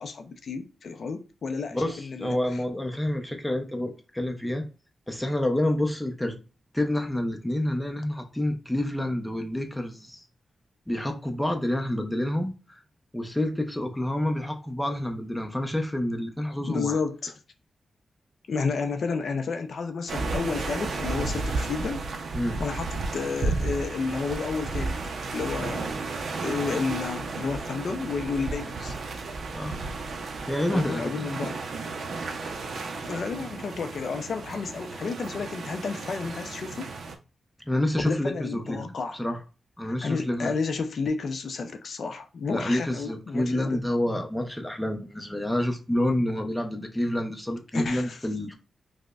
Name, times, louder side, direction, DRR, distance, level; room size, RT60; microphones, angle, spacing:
voice 1, 0.0-2.4 16.6-17.3 18.5-22.0 22.6-24.9 25.3-25.9 26.4-28.9 30.7-31.6 33.0-36.9 38.1-39.2 39.8-43.8 47.7-48.2, left 4 dB, 60° left, 0.4 m, -31 dB
voice 2, 1.7-4.6 5.1-6.4 6.7-10.2 10.9-12.8 13.1-16.9 22.3-22.6 29.5-29.8 30.5-31.3 37.7-39.4 39.8-40.5 42.5-48.5, left 1 dB, 5° left, 0.5 m, -28 dB
sound 1, 20.1-37.2, right 3 dB, 65° right, 0.5 m, -33 dB
4.8 x 2.1 x 2.3 m
wide cardioid pair, 125°, 0 cm